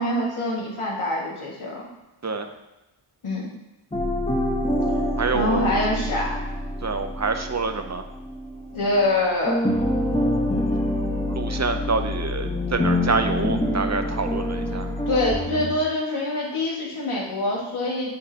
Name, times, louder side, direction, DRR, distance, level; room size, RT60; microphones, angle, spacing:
voice 1, 0.0-1.8 3.2-3.5 5.3-6.3 8.7-9.6 15.1-18.1, left 1 dB, 85° left, -4 dB, 2.0 m, -25 dB
sound 1, 3.9-9.2 9.5-15.7, left 1 dB, 15° left, 1.2 m, -26 dB
voice 2, 5.2-5.7 6.8-8.0 11.3-14.9, right 4 dB, 35° right, 7 dB, 0.7 m, -26 dB
9.7 x 4.9 x 2.9 m, 1.0 s
wide cardioid pair, 65°, 48 cm